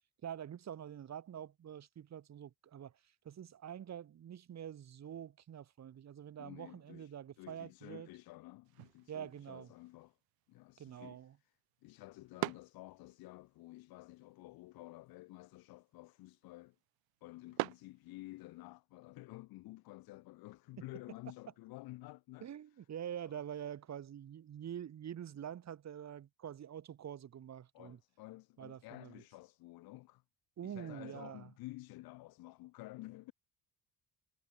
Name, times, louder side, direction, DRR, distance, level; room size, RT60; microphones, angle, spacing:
voice 1, 0.2-2.9 3.2-8.1 9.1-9.7 10.8-11.3 22.4-28.0 28.6-29.2 30.6-31.5, right 9 dB, 50° right, 3.0 m, -46 dB
voice 2, 6.4-10.2 10.5-11.5 11.8-16.8 17.2-22.5 23.2-23.4 27.7-30.2 30.6-33.3, left 19 dB, 80° left, 6.2 m, -52 dB
sound 1, 8.6-18.7, right 24 dB, 80° right, 1.1 m, -47 dB
supercardioid pair, 90°, 36 cm